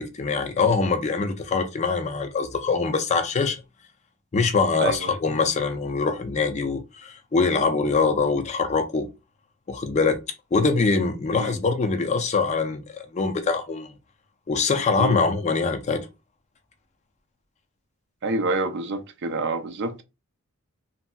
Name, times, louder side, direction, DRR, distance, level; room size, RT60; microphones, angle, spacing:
voice 1, 0.0-3.6 4.3-9.1 9.7-10.2 10.5-13.9 14.5-16.1, left 4 dB, 30° left, 0.4 m, -23 dB
voice 2, 4.8-5.1 11.3-11.6 15.0-15.2 18.2-20.0, right 3 dB, 50° right, 0.4 m, -27 dB
3.1 x 2.6 x 2.2 m
head